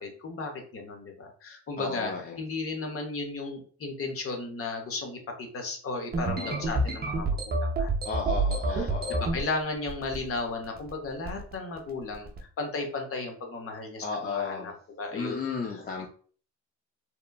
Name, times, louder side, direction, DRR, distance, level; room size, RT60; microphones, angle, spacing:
voice 1, 0.0-2.1 2.4-7.9 8.7-12.3 12.6-14.7 15.0-15.4, left 3 dB, 50° left, 3 dB, 0.8 m, -35 dB
voice 2, 1.8-2.4 6.4-6.7 8.0-9.2 14.0-14.7 15.1-16.1, left 4 dB, 30° left, 0 dB, 0.4 m, -34 dB
sound 1, 6.1-9.4 9.9-10.4 10.6-10.9 11.2-11.5 12.1-12.4, right 2 dB, 30° right, 0.5 m, -28 dB
2.9 x 2.3 x 2.2 m, 0.44 s
cardioid pair, 90°, 30 cm